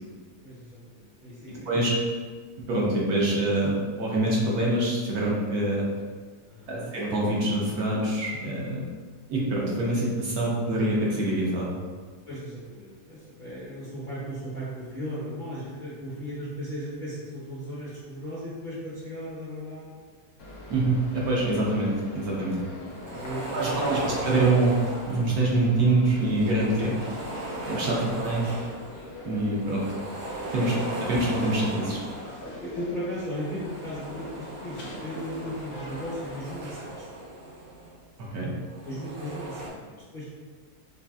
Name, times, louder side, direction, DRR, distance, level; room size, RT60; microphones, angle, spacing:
voice 1, 0.4-2.0 6.5-6.9 12.3-19.9 22.5-22.7 23.0-24.3 30.6-31.1 32.4-37.1 38.8-40.2, equal, 35° left, -9 dB, 0.9 m, -37 dB
voice 2, 1.5-1.9 2.7-5.8 6.7-8.8 9.3-11.7 20.7-22.6 23.5-24.8 25.1-26.9 27.7-28.4 29.2-29.8 30.5-30.7 31.0-32.0 38.3-38.5, right 2 dB, 65° right, -4 dB, 1.1 m, -25 dB
sound 1, 20.4-36.4, left 1 dB, 65° left, 1.2 m, -44 dB
sound 2, 22.9-25.5 26.1-29.0 29.4-32.6 33.2-38.0 38.6-39.7, right 1 dB, 85° right, 1.5 m, -37 dB
4.1 x 3.2 x 2.3 m, 1.5 s
omnidirectional pair, 1.8 m